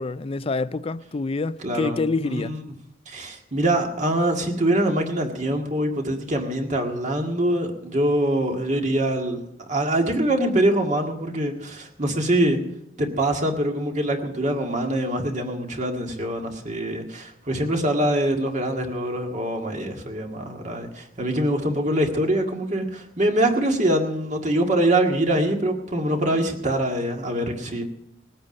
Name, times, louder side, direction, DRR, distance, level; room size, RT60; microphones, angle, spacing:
voice 1, 0.0-2.6, left 3 dB, 30° left, 0.4 m, -27 dB
voice 2, 1.6-2.6 3.1-9.4 9.7-12.6 13.0-27.9, right 1 dB, 40° right, 1.9 m, -24 dB
20.0 x 8.7 x 5.4 m
head